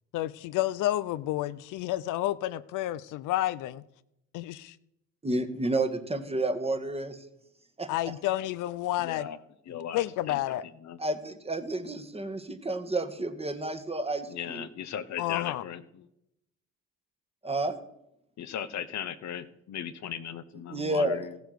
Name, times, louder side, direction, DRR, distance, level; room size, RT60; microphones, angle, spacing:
voice 1, 0.1-3.8 4.3-4.8 7.9-9.3 9.7-10.6 15.2-15.6, left 15 dB, 90° left, 15 dB, 0.5 m, -30 dB
voice 2, 5.2-7.2 7.8-7.9 11.0-14.6 17.4-17.8 20.7-21.2, right 2 dB, 20° right, 8 dB, 1.5 m, -30 dB
voice 3, 9.0-9.4 9.7-10.4 10.8-11.0 14.3-16.1 18.4-21.4, left 9 dB, 65° left, 13 dB, 0.9 m, -37 dB
15.0 x 8.1 x 6.6 m, 0.83 s
cardioid pair, 90°, 30 cm